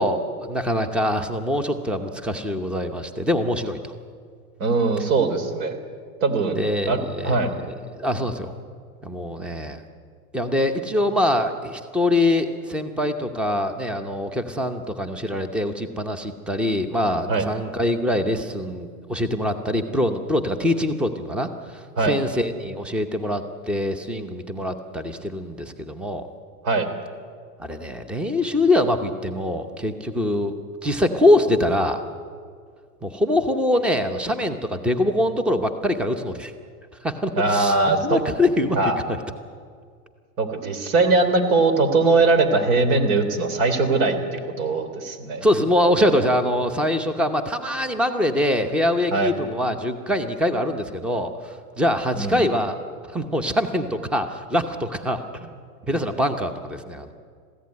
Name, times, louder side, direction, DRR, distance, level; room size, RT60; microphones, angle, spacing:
voice 1, 0.0-3.9 6.5-7.4 7.7-8.5 9.0-9.8 10.3-26.3 27.6-30.5 30.8-32.0 33.0-36.5 37.0-39.2 45.4-52.8 53.1-55.6 55.9-57.1, left 1 dB, ahead, 8 dB, 0.8 m, -24 dB
voice 2, 4.6-5.7 6.2-6.6 6.9-7.0 7.2-7.5 17.3-17.4 22.0-22.1 26.6-26.9 37.4-38.2 38.7-39.0 40.4-45.4 49.1-49.3 52.2-52.4, right 3 dB, 60° right, 8 dB, 3.3 m, -20 dB
21.5 x 15.5 x 9.6 m, 2.1 s
supercardioid pair, 145°, 45 cm